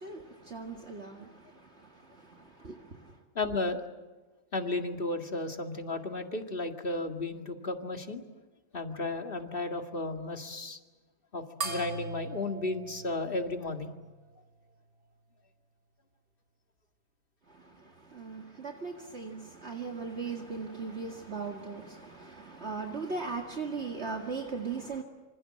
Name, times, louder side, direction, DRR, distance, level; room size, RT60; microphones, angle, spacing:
voice 1, 0.0-3.2 17.5-25.0, right 4 dB, 50° right, 2.3 m, -39 dB
voice 2, 3.4-3.8 4.5-8.2 8.7-10.8 11.3-13.9, left 2 dB, 40° left, 2.3 m, -34 dB
sound 1, 11.6-14.4, right 3 dB, 80° right, 4.0 m, -40 dB
27.5 x 26.0 x 7.7 m
omnidirectional pair, 1.5 m